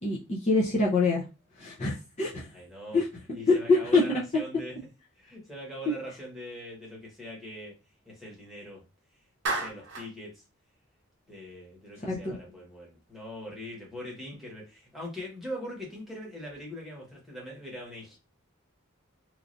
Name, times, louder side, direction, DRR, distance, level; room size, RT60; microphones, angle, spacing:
voice 1, 0.0-1.2 1.6-2.5 2.9-3.1 3.5-4.0 12.0-12.4, left 3 dB, 30° left, -5 dB, 0.6 m, -25 dB
voice 2, 2.5-3.0 3.3-4.7 5.2-7.7 8.0-8.8 9.4-10.4 11.3-18.2, equal, ahead, -4 dB, 1.1 m, -42 dB
Clapping, 9.5-10.1, right 3 dB, 55° right, 0.7 m, -31 dB
3.1 x 2.4 x 2.5 m, 0.29 s
head